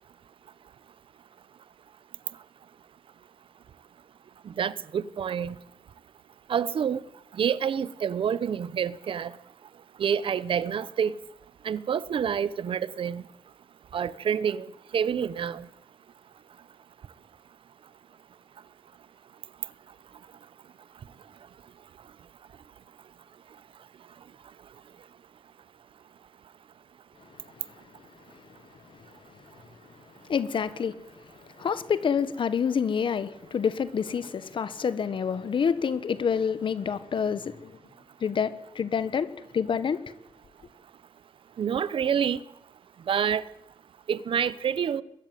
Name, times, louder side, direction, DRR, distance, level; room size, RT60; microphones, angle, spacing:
voice 1, 4.6-5.5 6.5-7.0 7.4-9.3 10.0-11.1 11.6-13.2 13.9-14.6 14.9-15.6 41.6-42.4 43.1-43.4 44.1-45.0, right 8 dB, 85° right, 0.9 m, -27 dB
voice 2, 30.3-31.0 31.6-37.7 38.2-40.0, left 7 dB, 75° left, 1.4 m, -27 dB
22.5 x 13.5 x 9.2 m
wide cardioid pair, 100°, 9 cm